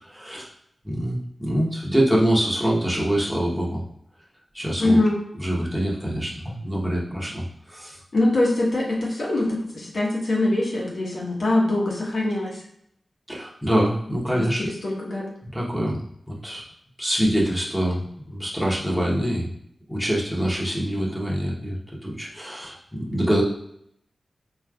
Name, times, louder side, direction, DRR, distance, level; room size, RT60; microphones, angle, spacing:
voice 1, 0.0-0.5 0.8-3.8 4.5-5.0 5.3-8.0 13.3-14.6 15.5-16.6 17.0-19.5 19.9-23.4, equal, ahead, -4 dB, 1.1 m, -25 dB
voice 2, 4.8-5.2 8.1-12.6 14.3-14.4 14.8-15.3, left 2 dB, 70° left, -3 dB, 1.3 m, -23 dB
4.3 x 3.2 x 2.4 m, 0.72 s
cardioid pair, 55°, 0 cm